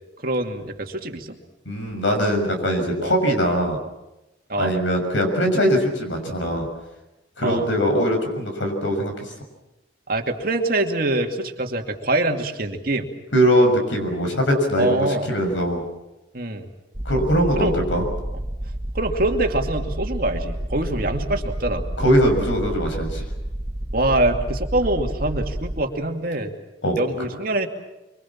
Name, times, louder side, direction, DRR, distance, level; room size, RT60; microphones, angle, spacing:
voice 1, 0.2-1.3 3.0-3.1 4.5-4.7 7.4-7.7 10.1-13.1 14.8-15.3 16.3-16.7 17.6-17.8 18.9-21.8 23.9-26.5 27.0-27.7, right 1 dB, 50° right, 4 dB, 2.4 m, -24 dB
voice 2, 1.6-3.8 4.5-6.7 7.4-9.3 13.3-15.8 17.0-18.0 22.0-23.2 26.8-27.0, equal, 90° left, 5 dB, 6.5 m, -21 dB
sound 1, 16.9-25.8, right 1 dB, 30° right, 1.7 m, -29 dB
25.0 x 25.0 x 7.3 m, 0.99 s
head